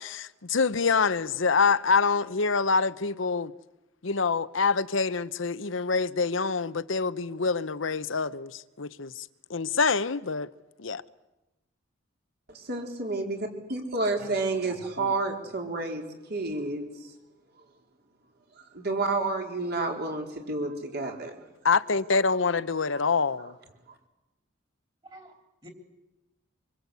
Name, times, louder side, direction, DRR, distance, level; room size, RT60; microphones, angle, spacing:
voice 1, 0.0-3.5 4.0-10.5 10.8-11.0 21.6-23.5, left 4 dB, 70° left, 0.9 m, -26 dB
voice 2, 12.5-16.0 16.3-17.1 18.6-21.4, right 3 dB, 55° right, 4.2 m, -30 dB
voice 3, 14.5-15.1 25.0-25.7, equal, 25° right, 3.5 m, -48 dB
25.5 x 25.0 x 8.4 m
head